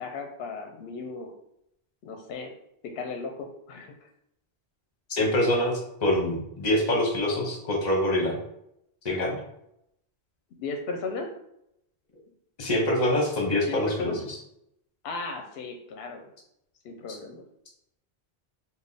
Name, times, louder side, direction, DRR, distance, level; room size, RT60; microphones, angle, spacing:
voice 1, 0.0-1.3 2.0-2.5 2.8-4.1 10.5-11.3 13.7-14.2 15.0-16.2 16.8-17.4, left 4 dB, 70° left, 4 dB, 0.8 m, -36 dB
voice 2, 5.1-8.4 9.0-9.4 12.6-14.1, left 1 dB, 45° left, 0 dB, 0.9 m, -25 dB
3.4 x 2.2 x 3.9 m, 0.78 s
omnidirectional pair, 1.1 m